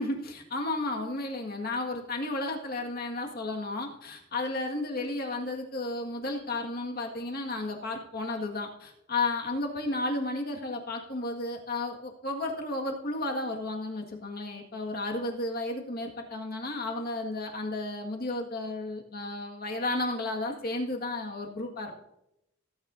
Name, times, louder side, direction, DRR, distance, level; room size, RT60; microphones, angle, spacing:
voice 1, 0.0-21.9, left 2 dB, 50° left, 2 dB, 1.8 m, -33 dB
18.5 x 8.9 x 2.6 m, 0.81 s
head